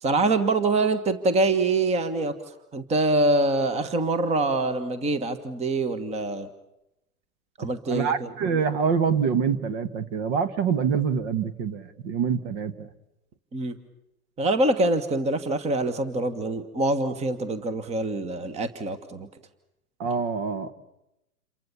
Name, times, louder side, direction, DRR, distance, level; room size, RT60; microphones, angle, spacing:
voice 1, 0.0-6.5 7.6-8.3 13.5-13.8 14.4-19.3, right 2 dB, 15° right, 12 dB, 1.5 m, -25 dB
voice 2, 7.9-12.9 20.0-20.7, right 6 dB, 40° right, 13 dB, 1.8 m, -25 dB
29.0 x 23.5 x 7.2 m, 0.86 s
hypercardioid pair, 130°, 43 cm